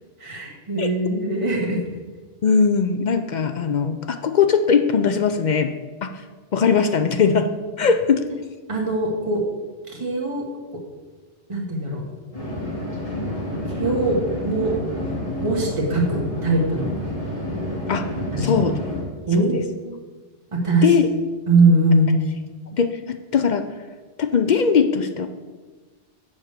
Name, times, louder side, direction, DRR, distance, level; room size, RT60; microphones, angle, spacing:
voice 1, 0.2-1.8 7.8-7.9 8.7-9.5 9.9-10.4 10.7-10.8 11.5-12.0 13.6-14.8 15.4-16.9 18.3-18.6 19.3-20.0 20.5-20.9 21.5-22.2, right 2 dB, 25° right, -2 dB, 1.6 m, -21 dB
voice 2, 2.4-5.7 6.0-6.1 6.5-7.5 7.8-8.2 17.9-18.1 18.4-18.8 19.4-19.5 20.8-21.1 22.7-23.7 24.2-25.3, left 6 dB, 60° left, 8 dB, 0.5 m, -20 dB
sound 1, 12.3-19.0, left 1 dB, 30° left, 2.6 m, -29 dB
7.2 x 5.0 x 6.6 m, 1.3 s
omnidirectional pair, 1.2 m